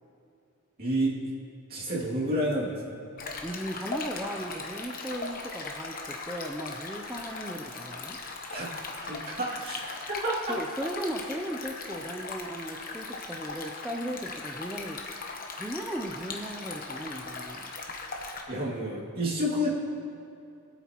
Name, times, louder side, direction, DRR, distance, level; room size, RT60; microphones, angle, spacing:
voice 1, 0.8-1.3 1.7-2.8 8.5-8.7 9.0-9.8 10.2-10.6 18.5-19.7, equal, 45° right, -6 dB, 2.4 m, -29 dB
Stream, 3.2-18.4, left 3 dB, 40° left, 1.1 m, -39 dB
voice 2, 3.4-8.2 10.5-15.1 15.6-17.7, equal, 5° right, 1 dB, 0.5 m, -37 dB
22.0 x 8.2 x 3.0 m, 2.5 s
head